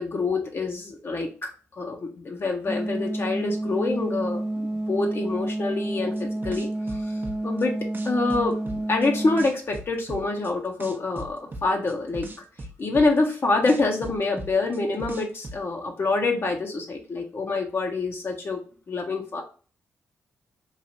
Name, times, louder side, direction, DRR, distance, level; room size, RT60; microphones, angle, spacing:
voice 1, 0.0-1.5 1.8-7.2 7.4-7.8 8.0-8.6 8.9-12.3 12.8-18.6 18.9-19.4, left 3 dB, 45° left, 2 dB, 0.6 m, -26 dB
sound 1, 2.7-9.4, right 1 dB, 80° right, 0.8 m, -29 dB
sound 2, 6.2-7.6 7.9-9.1 9.4-10.5 10.8-13.4 13.7-15.6, right 2 dB, 40° right, 0.5 m, -38 dB
3.1 x 2.4 x 2.6 m, 0.40 s
cardioid pair, 60°, 6 cm